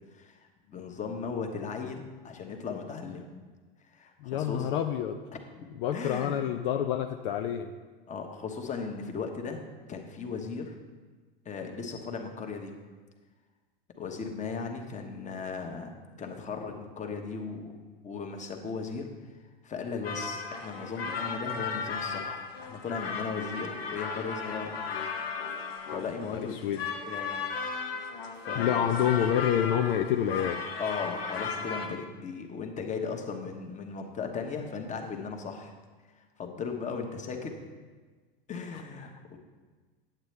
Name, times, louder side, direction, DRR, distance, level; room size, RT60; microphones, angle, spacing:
voice 1, 0.1-3.2 3.8-4.7 5.6-5.7 5.9-6.4 8.1-9.6 9.9-10.8 11.4-12.7 14.0-15.9 16.2-17.8 18.0-19.1 19.6-24.7 25.9-26.6 26.8-27.5 28.3-28.9 30.8-35.8 36.4-37.8 38.5-39.4, left 5 dB, 25° left, 3 dB, 1.1 m, -37 dB
voice 2, 4.2-5.4 5.8-7.7 26.3-26.9 28.6-30.6, left 9 dB, 65° left, 5 dB, 0.6 m, -28 dB
sound 1, 20.0-31.9, left 5 dB, 85° left, 0.9 m, -35 dB
8.8 x 8.2 x 3.3 m, 1.4 s
hypercardioid pair, 95°, 29 cm